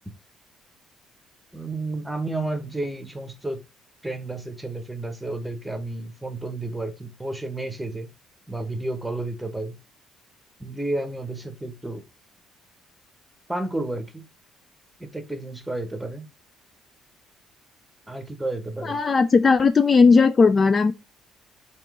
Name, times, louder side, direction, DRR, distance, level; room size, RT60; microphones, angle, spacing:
voice 1, 1.5-3.6 4.0-8.1 8.5-9.8 10.6-12.0 13.5-14.3 15.0-16.3 18.1-19.0, right 2 dB, 5° right, 1.0 m, -31 dB
voice 2, 18.8-20.9, left 4 dB, 35° left, 0.3 m, -17 dB
3.6 x 2.9 x 4.7 m
cardioid pair, 90°, 0 cm